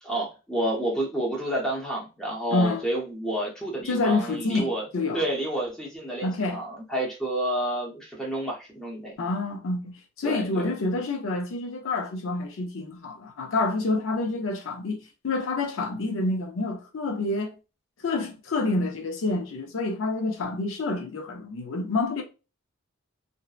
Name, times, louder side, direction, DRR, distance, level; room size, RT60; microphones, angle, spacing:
voice 1, 0.0-4.8 5.1-9.1 10.2-10.7, right 1 dB, 5° left, 0.7 m, -30 dB
voice 2, 2.5-2.8 3.9-5.2 6.2-6.6 9.2-15.0 15.2-17.5 18.0-22.2, left 2 dB, 70° left, 0.5 m, -28 dB
2.6 x 2.1 x 2.3 m
head